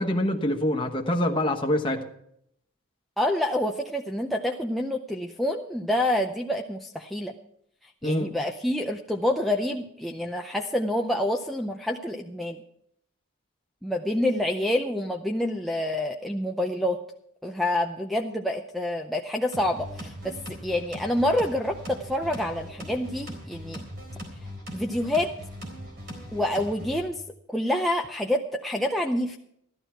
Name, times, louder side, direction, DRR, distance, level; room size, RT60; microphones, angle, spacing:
voice 1, 0.0-2.0 8.0-8.3, left 1 dB, 25° left, 3 dB, 1.2 m, -25 dB
voice 2, 3.2-7.3 8.0-12.6 13.8-17.0 17.4-23.8 24.7-25.3 26.3-27.2 27.5-29.4, left 1 dB, ahead, 0 dB, 0.5 m, -27 dB
sound 1, 19.5-27.0, equal, 45° right, 4.0 m, -40 dB
14.5 x 12.0 x 4.5 m, 0.72 s
head